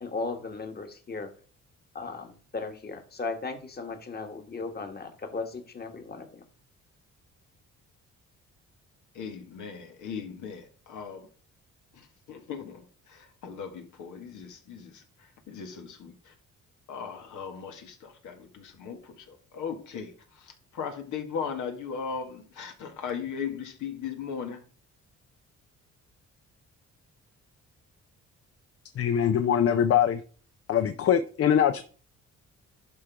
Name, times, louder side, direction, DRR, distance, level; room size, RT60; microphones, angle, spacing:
voice 1, 0.0-1.3 2.0-6.4, left 3 dB, 30° left, 1.7 m, -36 dB
voice 2, 9.1-11.3 11.9-16.4 16.9-24.6, left 6 dB, 80° left, 1.8 m, -38 dB
voice 3, 29.0-30.2 30.7-31.8, left 9 dB, 50° left, 0.6 m, -23 dB
11.0 x 3.8 x 4.7 m
cardioid pair, 90°, 30 cm